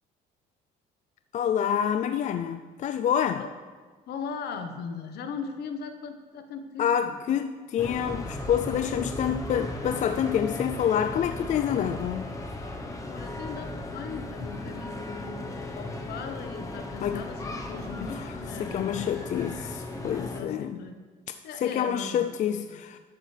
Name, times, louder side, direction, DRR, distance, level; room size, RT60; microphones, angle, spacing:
voice 1, 1.3-3.4 6.8-12.3 17.0-17.2 18.2-18.3 18.6-20.8 21.6-23.0, left 9 dB, 45° left, 9 dB, 0.4 m, -27 dB
voice 2, 4.1-7.2 13.1-15.4 15.7-19.4 20.3-21.0 21.4-22.8, left 5 dB, 70° left, 7 dB, 1.1 m, -39 dB
sound 1, 7.8-20.4, left 2 dB, 20° left, 1.0 m, -36 dB
11.5 x 8.7 x 3.3 m, 1.4 s
cardioid pair, 110°, 17 cm